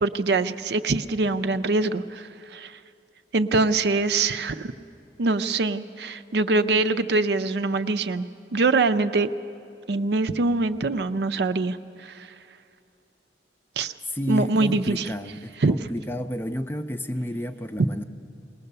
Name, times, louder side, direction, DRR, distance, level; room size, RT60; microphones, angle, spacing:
voice 1, 0.0-2.7 3.3-4.7 5.2-8.3 8.5-9.3 9.9-11.8 12.0-12.1 13.8-13.9 14.3-15.1 15.6-15.9, right 3 dB, 65° right, 11 dB, 0.5 m, -23 dB
voice 2, 14.1-18.0, equal, 10° left, 9 dB, 0.5 m, -31 dB
21.0 x 18.5 x 6.8 m, 2.6 s
head